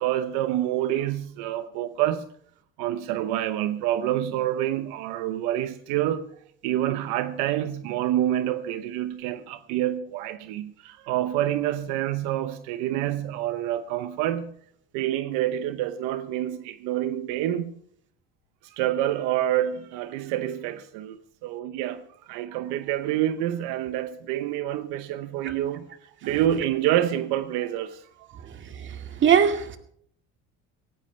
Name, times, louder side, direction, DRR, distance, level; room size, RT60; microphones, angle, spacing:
voice 1, 0.0-2.2 2.8-6.3 6.6-14.5 14.9-17.7 18.6-25.9 26.2-28.4, right 12 dB, 80° right, 0.9 m, -27 dB
voice 2, 28.8-29.8, right 8 dB, 40° right, 2.1 m, -22 dB
18.0 x 17.0 x 3.3 m
cardioid pair, 115°, 29 cm